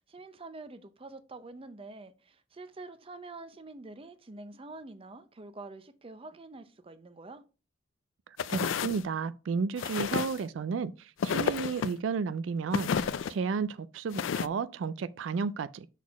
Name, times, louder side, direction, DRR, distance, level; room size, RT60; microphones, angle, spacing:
voice 1, 0.1-7.4, right 2 dB, 30° right, 0.6 m, -46 dB
sound 1, 8.4-9.0 9.8-10.4 11.2-11.9 12.7-13.3 14.1-14.5, left 7 dB, 85° left, 0.4 m, -31 dB
voice 2, 8.5-15.9, right 5 dB, 80° right, 0.4 m, -32 dB
6.2 x 4.1 x 4.7 m
head